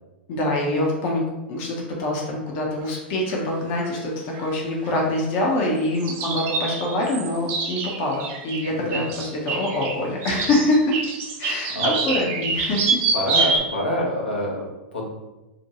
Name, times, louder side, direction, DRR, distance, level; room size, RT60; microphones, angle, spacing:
voice 1, 0.3-11.0 11.4-13.0 13.4-13.5, left 1 dB, 45° left, -1 dB, 0.6 m, -25 dB
sound 1, 2.9-3.0 3.3-3.4 3.8-4.0 4.3-4.5 4.9-5.0 6.0-13.6, right 4 dB, 40° right, 0.4 m, -26 dB
voice 2, 8.7-9.2 11.7-12.2 13.1-15.1, equal, 80° left, -3 dB, 0.7 m, -27 dB
2.5 x 2.2 x 2.8 m, 1.1 s
hypercardioid pair, 100°, 6 cm